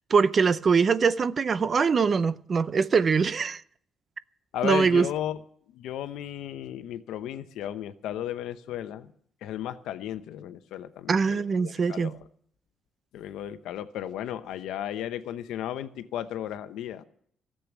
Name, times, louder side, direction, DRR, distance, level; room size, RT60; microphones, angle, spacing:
voice 1, 0.1-3.6 4.6-5.1 11.1-12.1, right 5 dB, 45° right, 0.6 m, -23 dB
voice 2, 4.5-5.4 5.7-9.1 9.4-12.2 13.1-17.0, left 11 dB, 85° left, 0.8 m, -34 dB
14.0 x 7.7 x 9.6 m
cardioid pair, 90°, 0 cm